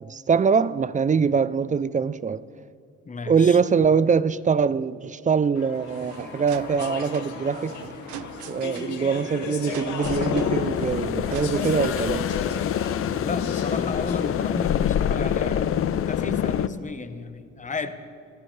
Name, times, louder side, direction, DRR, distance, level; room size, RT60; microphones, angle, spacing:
voice 1, 0.0-2.4 3.3-7.8 8.5-12.3, right 6 dB, 25° right, 0.4 m, -23 dB
voice 2, 3.1-3.6 13.2-17.9, left 4 dB, 25° left, 1.0 m, -33 dB
Speech / Chatter, 5.5-14.9, left 4 dB, 70° left, 2.2 m, -35 dB
sound 1, 5.7-12.3, right 13 dB, 75° right, 0.5 m, -43 dB
sound 2, 10.0-16.7, left 9 dB, 45° left, 0.5 m, -25 dB
24.5 x 14.0 x 3.3 m
cardioid pair, 90°, 30 cm